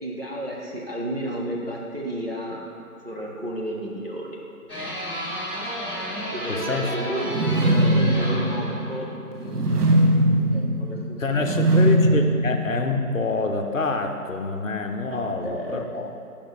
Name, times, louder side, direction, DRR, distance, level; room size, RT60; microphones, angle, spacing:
voice 1, 0.0-2.6 3.0-4.4 6.3-9.1 9.4-10.3 10.5-11.7 15.1-15.9, right 1 dB, 40° right, -4 dB, 0.7 m, -32 dB
sound 1, 4.7-9.2, equal, 20° left, 1.4 m, -32 dB
voice 2, 6.5-6.9 11.2-16.1, left 3 dB, 60° left, 5 dB, 0.6 m, -26 dB
sound 2, 7.2-13.3, right 1 dB, 80° right, 0.8 m, -21 dB
7.0 x 5.1 x 3.3 m, 2.6 s
figure-of-eight pair, 160°, 45 cm